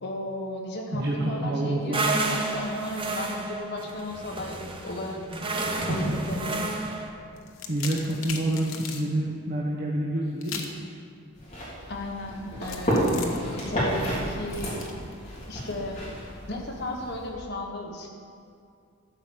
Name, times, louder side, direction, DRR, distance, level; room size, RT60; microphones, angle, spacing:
voice 1, 0.0-5.2 5.9-6.6 11.9-14.8 15.5-16.0 16.5-18.1, left 1 dB, 55° left, 0 dB, 1.4 m, -35 dB
voice 2, 0.9-2.1 5.7-6.1 7.7-10.7, right 1 dB, 50° right, -3 dB, 1.0 m, -28 dB
sound 1, 1.9-7.1, right 2 dB, 25° right, 0.8 m, -30 dB
sound 2, 7.4-9.0 10.4-10.8 12.6-15.7, left 6 dB, 80° left, 1.0 m, -39 dB
sound 3, 11.3-17.3, equal, 35° left, 3.1 m, -31 dB
12.5 x 5.0 x 7.2 m, 2.3 s
head